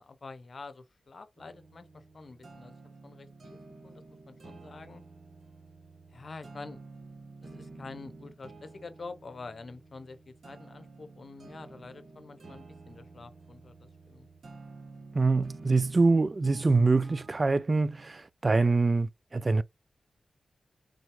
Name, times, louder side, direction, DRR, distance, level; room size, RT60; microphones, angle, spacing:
voice 1, 0.0-2.8 3.0-5.0 6.1-6.8 7.4-14.3, left 3 dB, 55° left, 0.9 m, -47 dB
sound 1, 1.4-17.5, right 3 dB, 65° right, 1.4 m, -50 dB
voice 2, 15.1-19.6, right 3 dB, 40° right, 0.3 m, -25 dB
4.3 x 3.7 x 3.2 m
cardioid pair, 50°, 0 cm